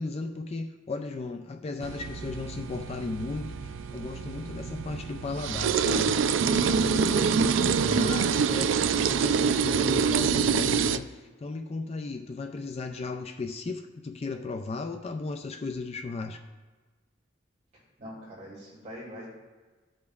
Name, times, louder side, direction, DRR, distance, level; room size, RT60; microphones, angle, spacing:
voice 1, 0.0-16.4, left 3 dB, 35° left, 5 dB, 0.3 m, -35 dB
sound 1, 1.8-11.0, right 6 dB, 90° right, 0.3 m, -26 dB
voice 2, 17.7-19.3, equal, 40° right, -5 dB, 2.2 m, -43 dB
15.0 x 5.1 x 2.4 m, 1.3 s
head